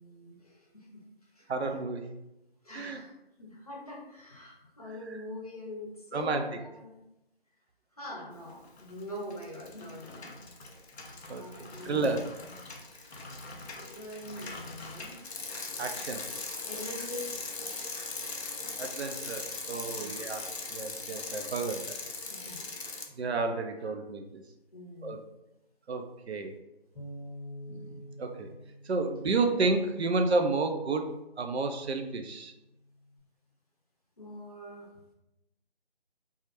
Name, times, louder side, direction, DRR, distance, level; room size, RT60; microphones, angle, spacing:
voice 1, 0.0-1.5 2.6-7.1 7.9-10.7 11.3-12.5 13.7-15.2 16.6-17.5 19.9-20.3 22.3-22.7 23.8-23.9 24.7-25.2 34.2-34.9, left 1 dB, 35° left, -3 dB, 0.5 m, -44 dB
voice 2, 1.5-2.0 2.7-3.0 6.1-6.4 11.3-11.4 11.8-12.3 15.8-16.2 18.8-22.0 23.2-24.4 25.0-25.2 25.9-26.5 27.7-28.5 28.9-31.1 31.4-32.5, right 3 dB, 85° right, 6 dB, 0.5 m, -31 dB
Bicycle, 8.6-9.0 9.3-23.1, left 3 dB, 85° left, 0.6 m, -40 dB
Bass guitar, 26.9-31.4 32.0-33.2, equal, ahead, 0.8 m, -48 dB
2.3 x 2.1 x 2.8 m, 0.91 s
figure-of-eight pair, 165°, 31 cm